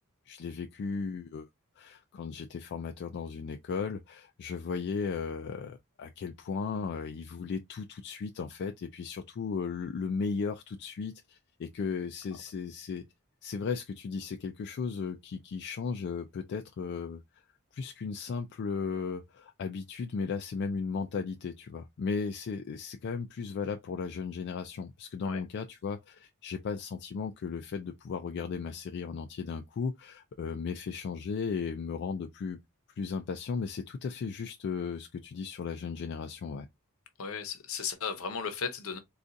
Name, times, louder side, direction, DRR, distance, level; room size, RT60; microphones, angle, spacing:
voice 1, 0.3-1.5 1.8-13.0 13.4-17.2 17.7-32.6 33.0-36.7, left 5 dB, 55° left, 0.3 m, -36 dB
voice 2, 37.2-39.0, left 6 dB, 75° left, 0.8 m, -35 dB
3.8 x 2.4 x 2.5 m
head